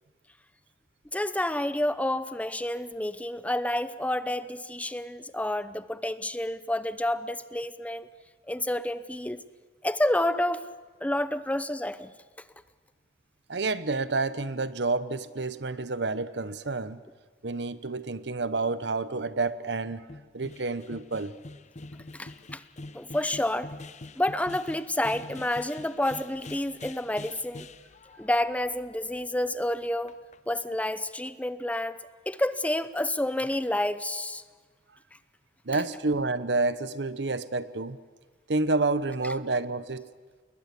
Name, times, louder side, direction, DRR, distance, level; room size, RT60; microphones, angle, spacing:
voice 1, 1.1-8.1 8.5-9.4 9.8-10.7 11.0-12.1 22.1-22.6 22.9-23.7 24.2-27.7 28.2-30.1 30.5-32.0 32.3-34.4, left 1 dB, 10° left, 0.7 m, -29 dB
voice 2, 13.5-17.0 17.4-20.0 20.3-21.3 35.7-38.0 38.5-40.0, right 3 dB, 70° right, 1.1 m, -29 dB
sound 1, 19.4-19.5 19.7-19.8 20.1-29.7 30.1-30.4, left 2 dB, 40° left, 0.8 m, -45 dB
29.0 x 20.5 x 8.4 m
head